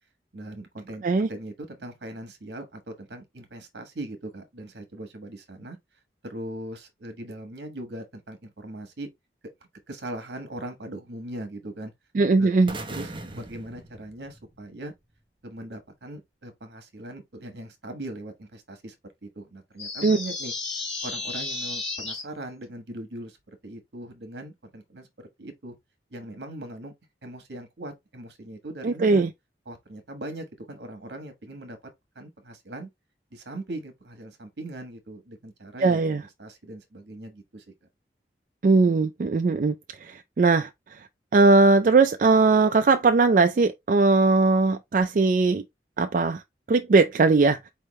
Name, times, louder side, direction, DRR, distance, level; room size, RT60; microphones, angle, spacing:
voice 1, 0.3-5.8 6.2-9.1 9.9-11.9 12.4-12.5 12.9-14.9 15.4-18.9 19.2-20.5 21.0-25.1 25.4-25.8 26.1-26.9 27.2-29.2 29.7-31.8 32.1-32.9 33.3-36.0 36.4-37.6, right 1 dB, 75° right, 1.3 m, -40 dB
voice 2, 12.1-12.7 20.0-20.2 28.8-29.3 35.8-36.2 38.6-41.1 41.3-45.6 46.0-46.4 46.7-47.6, right 3 dB, 50° right, 0.3 m, -20 dB
sound 1, 12.7-14.8, right 2 dB, 30° right, 0.7 m, -39 dB
sound 2, 19.8-22.2, left 3 dB, 35° left, 2.1 m, -33 dB
4.5 x 3.4 x 3.0 m
head